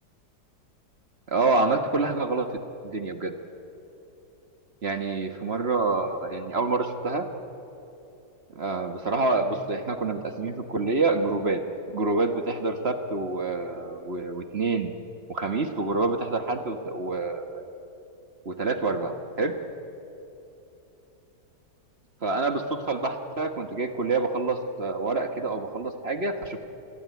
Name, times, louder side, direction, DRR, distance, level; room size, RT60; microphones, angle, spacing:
voice 1, 1.3-2.5 2.8-3.3 4.8-7.3 8.5-11.6 11.9-14.9 15.3-17.7 18.4-19.6 22.2-26.6, right 3 dB, 40° right, 6 dB, 1.5 m, -27 dB
26.5 x 21.5 x 9.5 m, 2.9 s
omnidirectional pair, 1.9 m